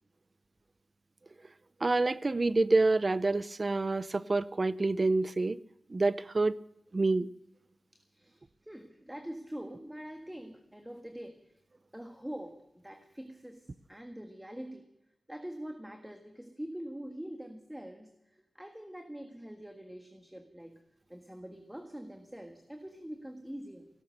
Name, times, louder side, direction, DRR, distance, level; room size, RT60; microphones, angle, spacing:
voice 1, 1.8-5.6 5.9-6.6 6.9-7.3, right 3 dB, 45° right, 0.6 m, -27 dB
voice 2, 7.9-11.5 11.9-14.9 15.3-20.8 21.1-23.9, right 1 dB, 10° right, 1.7 m, -44 dB
17.5 x 12.5 x 6.6 m
cardioid pair, 60°, 0 cm